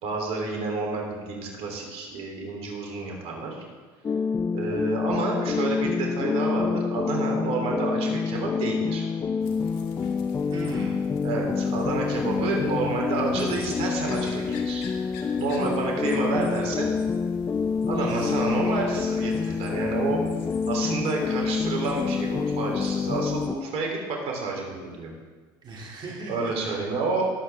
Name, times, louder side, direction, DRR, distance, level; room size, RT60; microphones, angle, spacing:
voice 1, 0.0-3.6 4.5-9.1 11.2-14.9 15.4-16.9 17.9-20.2 20.7-25.1 26.3-27.2, right 3 dB, 55° right, 0 dB, 3.4 m, -29 dB
sound 1, 4.0-23.5, left 5 dB, 25° left, 0.4 m, -27 dB
sound 2, 9.4-23.5, left 4 dB, 70° left, 1.8 m, -46 dB
voice 2, 10.5-11.0 17.9-18.4 25.6-26.8, right 3 dB, 40° right, -4 dB, 2.8 m, -37 dB
19.5 x 8.3 x 3.6 m, 1.4 s
hypercardioid pair, 80°, 12 cm